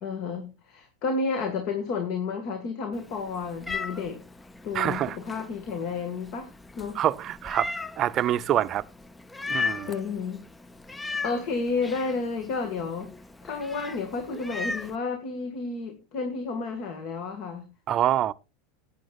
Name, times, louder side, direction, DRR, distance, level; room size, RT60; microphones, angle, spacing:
voice 1, 0.0-4.2 4.6-6.5 6.8-7.0 9.9-10.4 11.2-13.1 13.4-17.7, left 4 dB, 50° left, 1.8 m, -31 dB
Meow, 2.9-15.0, left 4 dB, 10° left, 0.5 m, -37 dB
voice 2, 4.7-5.2 6.9-8.8 9.5-9.9 17.9-18.3, right 11 dB, 40° right, 0.6 m, -26 dB
19.5 x 8.6 x 2.4 m
hypercardioid pair, 85°, 0 cm